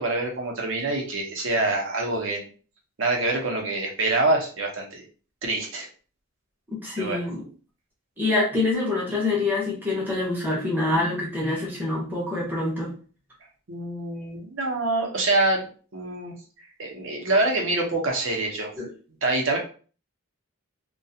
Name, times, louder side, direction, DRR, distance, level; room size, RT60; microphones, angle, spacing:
voice 1, 0.0-2.5 3.0-5.0 5.4-5.9 7.0-7.2 13.7-15.6 15.9-16.3 16.8-18.7 19.2-19.6, right 2 dB, 65° right, 1 dB, 0.7 m, -25 dB
voice 2, 6.7-7.5 8.2-12.9 18.8-18.9, left 2 dB, 10° right, -4 dB, 0.6 m, -26 dB
2.3 x 2.3 x 2.6 m, 0.39 s
head